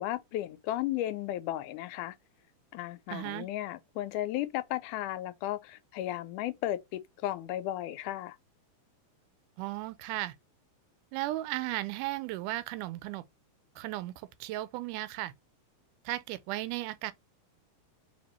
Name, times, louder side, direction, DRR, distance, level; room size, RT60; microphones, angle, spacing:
voice 1, 0.0-2.2 2.7-8.4, left 14 dB, 85° left, 2.0 m, -34 dB
voice 2, 3.1-3.5 9.6-10.4 11.1-13.2 13.8-14.1 14.4-15.3 16.1-17.1, right 16 dB, 90° right, 2.1 m, -35 dB
4.2 x 3.3 x 3.0 m
omnidirectional pair, 3.6 m